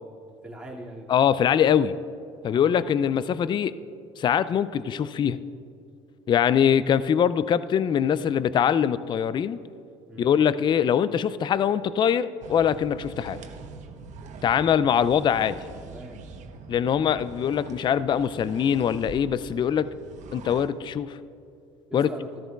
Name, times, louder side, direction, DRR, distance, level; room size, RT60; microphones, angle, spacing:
voice 1, 0.4-1.1 2.5-2.7 10.1-10.3 15.8-16.3 21.9-22.4, right 1 dB, 5° right, -4 dB, 2.3 m, -41 dB
voice 2, 1.1-1.9 2.4-3.7 4.2-5.4 6.3-9.6 10.2-13.4 14.4-15.6 16.7-19.9 20.3-21.2 21.9-22.1, left 8 dB, 30° left, 16 dB, 0.3 m, -23 dB
sound 1, 12.4-20.7, right 4 dB, 50° right, 1.0 m, -44 dB
13.5 x 13.5 x 2.4 m, 2.5 s
hypercardioid pair, 75°, 15 cm